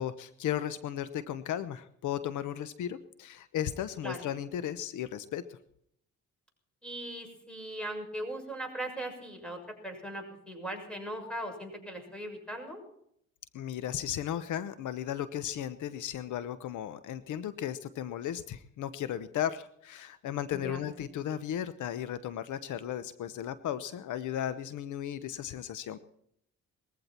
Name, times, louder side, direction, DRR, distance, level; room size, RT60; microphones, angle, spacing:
voice 1, 0.0-5.6 13.5-26.0, left 10 dB, 75° left, 13 dB, 1.0 m, -35 dB
voice 2, 6.8-9.6 9.8-12.8 20.5-20.8, right 1 dB, 5° left, 3 dB, 6.8 m, -39 dB
20.5 x 15.0 x 4.4 m, 0.70 s
cardioid pair, 90°, 30 cm